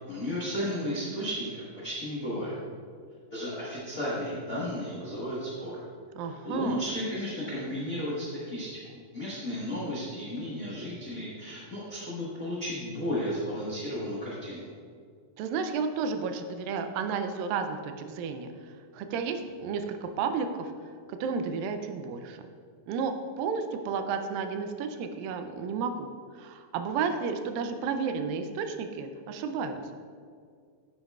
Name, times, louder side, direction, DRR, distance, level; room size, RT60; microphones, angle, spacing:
voice 1, 0.1-2.5 3.3-5.8 6.4-8.7 9.1-14.7, equal, 75° left, -8 dB, 0.7 m, -33 dB
voice 2, 6.2-6.8 15.4-20.7 21.1-22.4 22.9-26.1 26.3-29.8, right 5 dB, 85° right, 7 dB, 2.3 m, -32 dB
10.0 x 7.6 x 2.4 m, 2.1 s
omnidirectional pair, 4.1 m